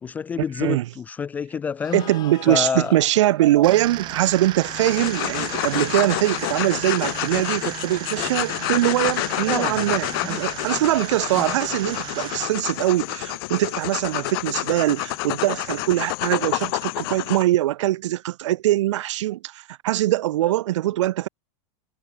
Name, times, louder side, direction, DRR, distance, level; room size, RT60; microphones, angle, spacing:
voice 1, 0.0-2.1 2.5-2.9 9.5-9.9 10.2-10.4 11.4-11.6, left 6 dB, 10° left, 0.3 m, -28 dB
sound 1, 1.8-8.2, left 14 dB, 25° left, 4.9 m, -44 dB
voice 2, 1.9-21.3, right 15 dB, 80° right, 2.1 m, -22 dB
sound 2, 3.6-12.5, right 16 dB, 30° right, 4.5 m, -35 dB
sound 3, 4.6-17.4, left 23 dB, 50° left, 3.7 m, -28 dB
supercardioid pair, 175°, 15 cm